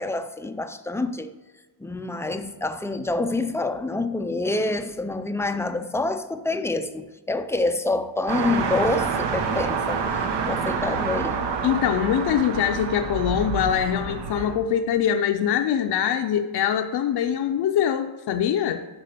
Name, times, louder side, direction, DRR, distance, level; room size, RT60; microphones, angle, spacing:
voice 1, 0.0-1.4 1.8-10.0 10.5-11.4, left 2 dB, 5° left, 0.3 m, -27 dB
sound 1, 8.3-14.5, right 5 dB, 85° right, 1.1 m, -27 dB
voice 2, 11.6-18.9, left 9 dB, 65° left, 0.6 m, -23 dB
10.5 x 4.4 x 6.7 m
wide cardioid pair, 165°, 41 cm